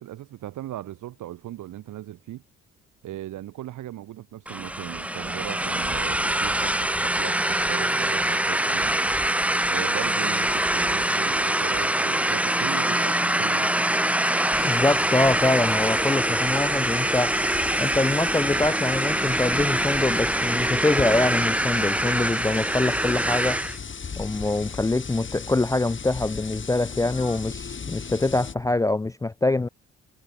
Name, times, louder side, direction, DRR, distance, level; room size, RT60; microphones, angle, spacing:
voice 1, 0.0-2.4 3.0-8.9 9.7-13.9, right 13 dB, 80° right, 3.7 m, -38 dB
sound 1, 4.5-23.8, right 1 dB, 5° right, 1.0 m, -24 dB
sound 2, 14.5-28.5, left 6 dB, 40° left, 6.7 m, -38 dB
voice 2, 14.6-17.4 17.8-23.6 24.2-29.7, left 2 dB, 10° left, 0.4 m, -24 dB
cardioid pair, 90°, 30 cm